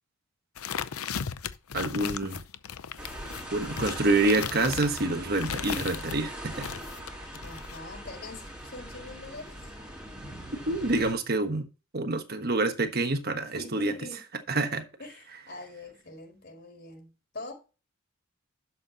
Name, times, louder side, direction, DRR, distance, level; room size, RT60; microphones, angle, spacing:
sound 1, 0.6-6.2 6.6-7.8, left 7 dB, 85° left, 0.7 m, -36 dB
voice 1, 1.7-2.4 3.5-6.7 10.7-11.7 11.9-13.9 14.5-14.9, right 2 dB, 45° right, 1.3 m, -27 dB
sound 2, 3.0-11.1, right 1 dB, 5° right, 3.8 m, -41 dB
voice 2, 7.4-9.8 13.5-14.2 15.0-17.5, left 2 dB, 50° left, 4.5 m, -44 dB
11.5 x 7.5 x 2.9 m
head